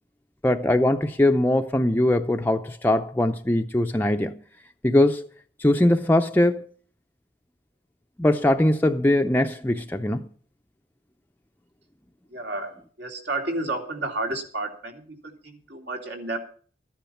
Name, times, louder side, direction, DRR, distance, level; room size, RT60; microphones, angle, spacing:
voice 1, 0.4-4.4 4.8-5.3 5.6-6.7 8.2-10.3, left 1 dB, 10° left, 0.6 m, -21 dB
voice 2, 12.3-16.4, right 2 dB, 70° right, 3.1 m, -31 dB
14.0 x 10.5 x 5.7 m
head